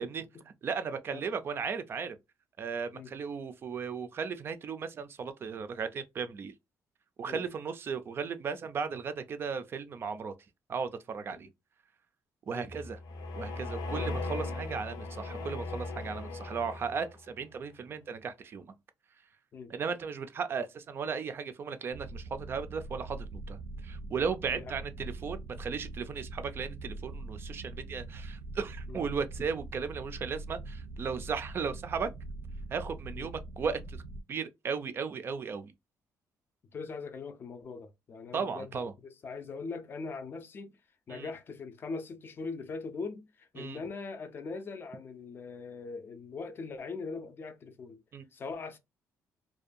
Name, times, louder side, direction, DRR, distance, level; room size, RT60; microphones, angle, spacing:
voice 1, 0.0-0.4 1.1-1.3 2.9-3.1 7.2-7.5 12.5-12.7 13.9-14.1 19.5-19.7 24.5-24.7 28.9-29.0 33.2-33.3 36.7-40.8 41.1-48.0 48.3-48.8, left 4 dB, 35° left, 0.4 m, -41 dB
voice 2, 0.6-2.2 2.6-6.5 7.2-10.3 10.7-11.5 12.5-13.0 13.4-18.7 19.7-32.1 32.7-34.0 34.3-35.7 38.3-38.9 41.1-41.3 43.6-43.8 48.1-48.3, right 6 dB, 35° right, 0.3 m, -36 dB
sound 1, 12.6-17.3, left 3 dB, 90° left, 0.6 m, -38 dB
sound 2, 21.9-34.2, right 2 dB, 85° right, 0.6 m, -43 dB
2.5 x 2.2 x 2.5 m
cardioid pair, 155°, 7 cm